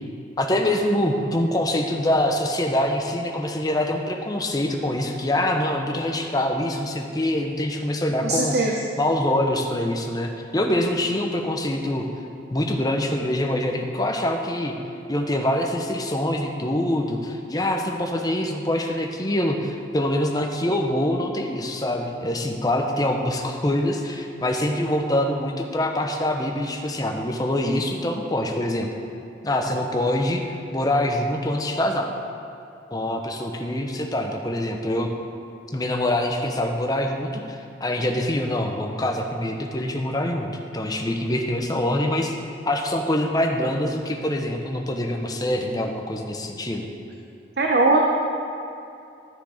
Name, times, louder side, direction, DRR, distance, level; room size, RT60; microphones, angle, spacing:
voice 1, 0.4-8.5 9.0-12.1 12.5-14.7 15.1-28.9 29.4-30.4 30.7-32.1 32.9-35.1 35.7-40.5 40.7-42.3 42.7-46.9, left 1 dB, 20° left, 3 dB, 0.8 m, -24 dB
voice 2, 8.2-8.8 47.6-48.0, right 2 dB, 55° right, 0 dB, 0.7 m, -20 dB
12.0 x 6.6 x 4.9 m, 2.7 s
head